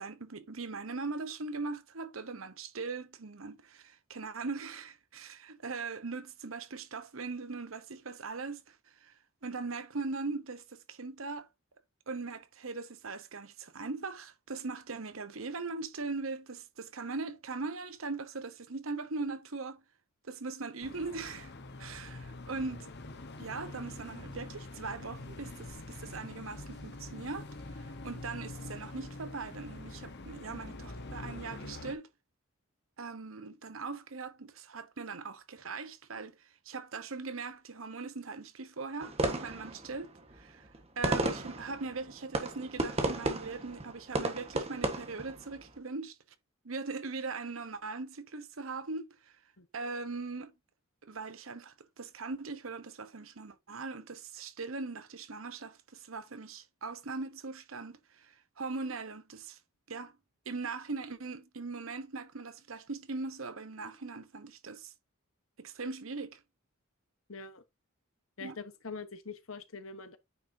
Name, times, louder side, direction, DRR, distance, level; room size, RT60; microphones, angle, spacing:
voice 1, 0.0-11.5 12.1-19.8 20.2-21.5 21.8-22.9 23.4-32.1 33.0-40.7 41.0-46.2 46.6-49.4 49.7-50.5 51.0-59.6 59.9-60.2 60.4-64.9 65.6-66.4 68.4-68.6, right 4 dB, 80° right, 1.0 m, -40 dB
sound 1, 20.8-32.0, left 2 dB, 55° left, 1.2 m, -45 dB
sound 2, 39.0-45.8, right 2 dB, 30° right, 1.4 m, -34 dB
voice 2, 67.3-67.6 68.4-70.2, left 4 dB, 80° left, 1.2 m, -44 dB
9.3 x 5.8 x 2.8 m
head